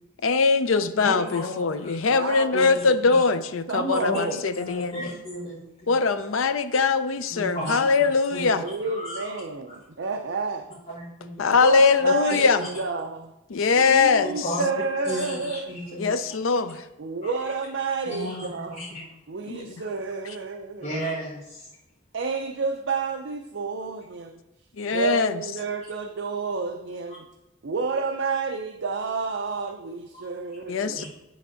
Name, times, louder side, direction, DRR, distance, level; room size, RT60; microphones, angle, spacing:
voice 1, 0.2-5.1 5.9-8.6 11.4-12.7 13.5-14.5 16.0-16.9 19.5-19.7 24.8-25.4 30.7-31.0, left 4 dB, 75° left, 11 dB, 0.5 m, -22 dB
voice 2, 1.0-1.9 2.5-3.2 3.7-5.6 5.8-5.9 7.3-7.8 8.3-8.5 8.8-9.4 10.9-11.3 12.0-12.7 14.2-14.7 15.0-16.0 18.1-19.1 20.8-21.7 30.1-30.3 31.0-31.1, left 1 dB, 30° left, -6 dB, 1.4 m, -33 dB
voice 3, 2.1-2.5 2.8-3.0 3.7-4.4 8.6-10.6 11.5-13.3 13.8-15.7 17.0-18.9 19.3-20.9 22.1-24.4 24.9-27.3 27.6-31.0, right 4 dB, 60° right, 4 dB, 0.5 m, -30 dB
10.0 x 3.5 x 5.6 m, 0.93 s
head